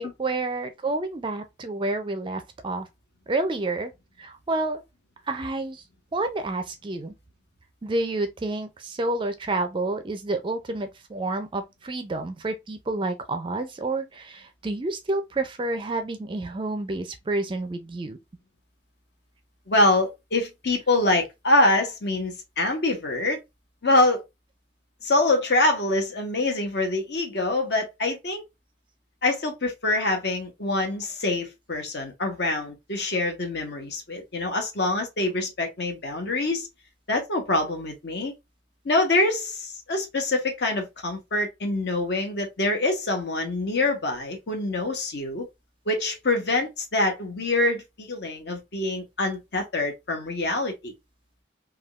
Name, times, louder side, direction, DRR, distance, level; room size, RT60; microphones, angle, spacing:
voice 1, 0.0-2.9 3.3-3.9 4.2-4.8 5.3-5.8 6.1-7.1 7.8-18.2, right 2 dB, 25° right, 0.4 m, -29 dB
voice 2, 19.7-23.4 23.8-24.2 25.0-28.4 29.2-36.7 37.1-38.3 38.8-45.5 45.9-50.9, left 2 dB, 60° left, 0.9 m, -25 dB
3.5 x 2.3 x 2.3 m
head